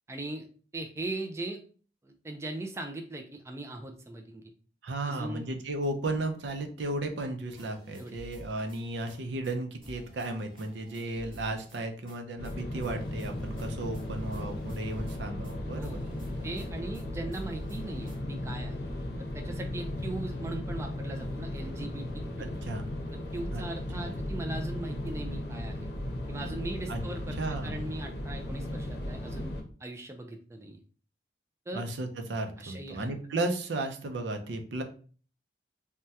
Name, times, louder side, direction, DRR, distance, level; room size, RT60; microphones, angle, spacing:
voice 1, 0.1-0.4 0.7-1.6 2.0-4.4 5.0-5.5 8.0-8.2 15.7-16.0 16.4-18.8 19.2-22.5 23.1-25.9 26.3-29.5 29.8-30.8 31.7-31.8 32.6-33.1, right 2 dB, 15° right, 3 dB, 0.3 m, -39 dB
voice 2, 4.8-16.0 22.4-22.9 23.5-23.6 24.0-24.1 26.9-27.0 27.4-27.8 31.7-34.8, right 2 dB, 85° right, 5 dB, 0.5 m, -34 dB
sound 1, 7.5-9.2 9.4-9.5 9.8-12.2 12.4-12.5 12.8-15.5 15.8-16.7 16.9-18.2, equal, 30° right, 1.4 m, -51 dB
sound 2, 12.4-29.6, left 1 dB, 70° left, 0.7 m, -36 dB
3.3 x 2.2 x 2.7 m, 0.41 s
head